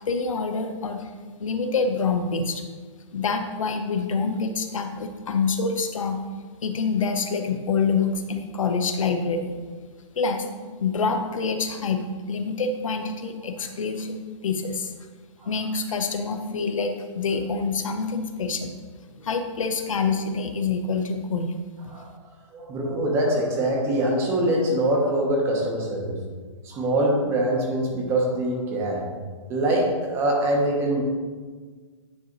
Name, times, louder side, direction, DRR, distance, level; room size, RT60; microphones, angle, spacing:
voice 1, 0.1-1.1 1.4-2.6 3.1-6.2 6.6-9.5 10.2-10.5 10.8-12.0 12.3-14.9 15.5-18.7 19.2-21.5, left 4 dB, 90° left, 6 dB, 0.8 m, -26 dB
voice 2, 22.5-26.2 26.6-29.0 29.5-31.0, right 1 dB, 15° right, -1 dB, 0.9 m, -23 dB
9.4 x 3.2 x 3.9 m, 1.5 s
hypercardioid pair, 165°, 16 cm